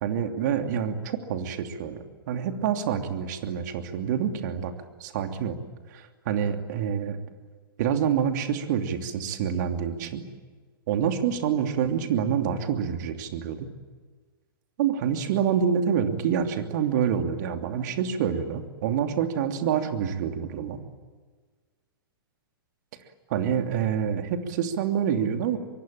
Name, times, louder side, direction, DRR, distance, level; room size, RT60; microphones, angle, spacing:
voice 1, 0.0-4.7 5.0-5.6 5.9-7.2 7.8-10.2 10.9-13.7 14.8-20.8 23.3-25.6, right 8 dB, 50° right, 6 dB, 2.9 m, -27 dB
24.5 x 23.5 x 8.8 m, 1.4 s
figure-of-eight pair, 110°, 12 cm